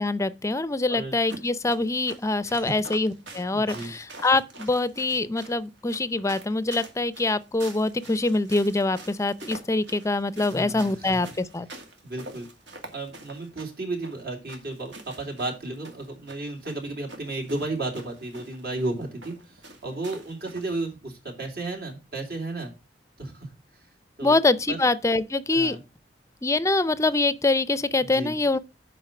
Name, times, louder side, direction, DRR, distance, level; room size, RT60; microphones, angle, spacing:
voice 1, 0.0-11.7 24.2-25.8 26.4-28.6, left 2 dB, 15° left, 0.5 m, -24 dB
sound 1, 1.3-20.8, right 2 dB, 85° right, 2.2 m, -46 dB
voice 2, 3.5-3.9 10.5-11.1 12.0-12.5 12.9-22.7 23.2-23.5 24.2-24.4 24.7-24.8 25.5-25.8 28.0-28.3, right 2 dB, 65° right, 3.1 m, -33 dB
7.6 x 5.3 x 5.9 m
head